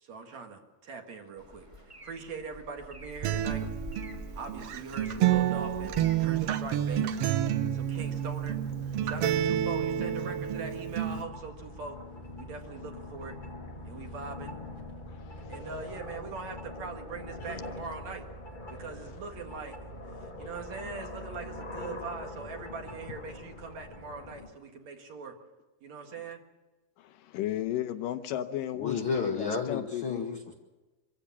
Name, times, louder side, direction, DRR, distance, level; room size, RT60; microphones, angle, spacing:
voice 1, 0.0-3.7 4.3-7.3 7.7-8.6 9.0-12.0 12.4-13.4 13.8-14.5 15.5-18.3 18.7-19.8 20.2-25.4 25.8-26.4, right 4 dB, 55° right, 3 dB, 2.9 m, -42 dB
sound 1, 1.4-6.3, left 1 dB, 15° right, 1.5 m, -45 dB
Acoustic guitar, 3.2-11.2, right 11 dB, 80° right, 1.4 m, -29 dB
sound 2, 5.1-24.5, left 1 dB, 25° left, 1.1 m, -44 dB
voice 2, 15.1-15.6 20.4-20.5 27.0-30.3, left 12 dB, 80° left, 9 dB, 2.5 m, -35 dB
voice 3, 28.7-30.6, left 5 dB, 55° left, 2 dB, 1.5 m, -31 dB
25.0 x 15.0 x 7.2 m, 1.2 s
omnidirectional pair, 3.9 m